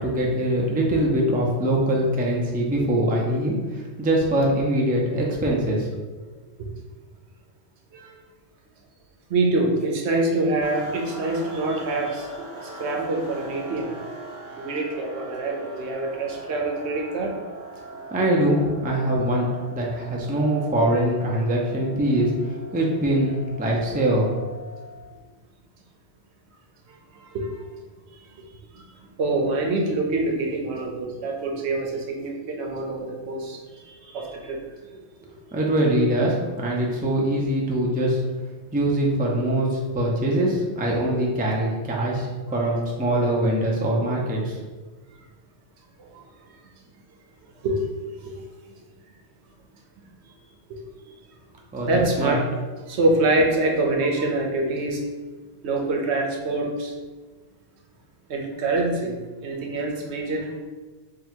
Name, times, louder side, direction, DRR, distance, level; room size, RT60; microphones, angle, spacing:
voice 1, 0.0-5.9 18.1-22.3 22.7-24.3 35.5-38.2 38.7-44.6 51.7-52.3, right 1 dB, 15° right, -2 dB, 0.4 m, -23 dB
voice 2, 9.3-13.9 14.6-17.3 27.1-27.6 28.7-28.8 29.2-34.6 42.6-42.7 43.2-43.3 46.0-46.3 47.6-47.8 48.3-48.4 50.7-50.8 51.9-52.4 52.9-55.0 55.6-56.9 58.3-59.1 59.4-60.5, right 2 dB, 80° right, 1 dB, 1.0 m, -25 dB
sound 1, 10.6-25.2, right 1 dB, 50° right, 0.8 m, -41 dB
3.7 x 2.3 x 4.4 m, 1.3 s
omnidirectional pair, 1.1 m